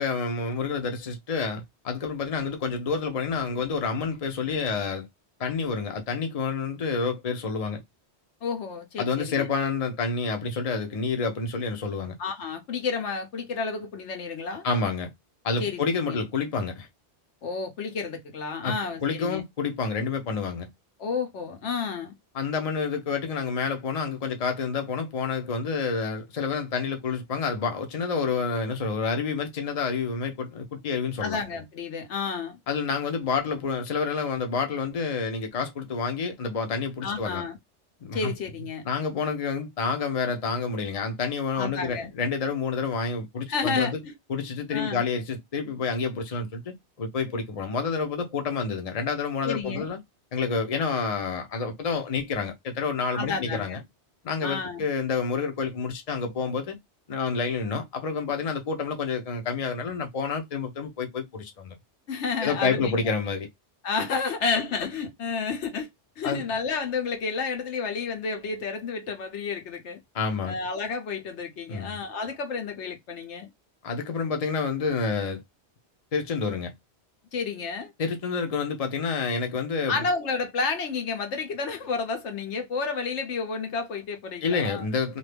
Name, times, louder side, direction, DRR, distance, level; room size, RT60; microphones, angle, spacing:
voice 1, 0.0-5.1 5.4-7.8 9.0-12.1 14.6-15.1 15.4-16.9 18.6-18.7 19.0-20.7 22.3-31.4 32.7-37.5 38.0-38.3 38.8-44.0 44.3-50.0 50.3-53.8 54.2-56.8 57.1-61.8 62.4-63.5 66.2-66.4 70.1-70.6 71.7-72.0 73.8-75.4 76.1-76.7 78.0-80.0 84.4-85.2, left 5 dB, 40° left, 0.7 m, -28 dB
voice 2, 8.4-9.5 12.2-14.6 15.6-16.2 17.4-19.4 21.0-22.1 31.2-32.6 37.0-37.6 38.1-38.8 41.5-42.1 43.5-44.1 44.7-45.0 49.4-49.9 53.1-53.8 54.4-54.8 62.1-63.0 63.8-65.9 66.2-70.0 70.4-73.5 77.3-77.9 79.9-84.8, left 5 dB, 85° left, 1.2 m, -31 dB
2.7 x 2.5 x 3.3 m
omnidirectional pair, 1.2 m